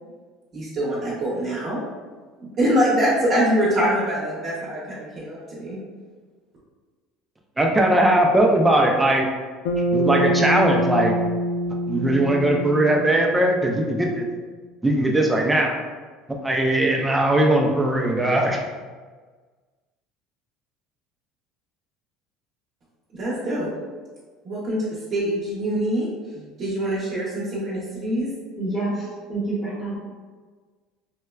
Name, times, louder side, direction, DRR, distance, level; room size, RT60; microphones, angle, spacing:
voice 1, 0.5-1.8 2.4-5.8 23.1-23.7 24.4-26.1 26.3-28.3, equal, 35° right, -8 dB, 0.8 m, -24 dB
voice 2, 7.6-9.3 9.9-11.2 11.9-14.3 14.8-15.7 16.4-18.6, right 1 dB, 10° right, 0 dB, 0.4 m, -19 dB
Bass guitar, 9.6-14.1, right 1 dB, 90° left, 0.4 m, -25 dB
voice 3, 28.6-30.0, right 2 dB, 20° left, -7 dB, 0.9 m, -28 dB
4.3 x 2.1 x 2.3 m, 1.4 s
cardioid pair, 150°, 0 cm